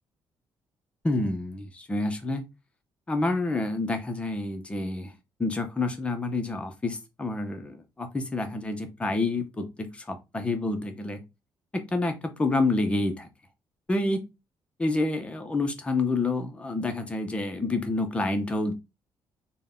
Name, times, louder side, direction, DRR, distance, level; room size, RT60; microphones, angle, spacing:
voice 1, 1.0-2.4 3.1-5.1 5.4-11.2 11.7-13.3 13.9-14.2 14.8-18.7, left 2 dB, 15° left, 0.6 m, -28 dB
3.9 x 2.1 x 3.5 m
cardioid pair, 170°, 9 cm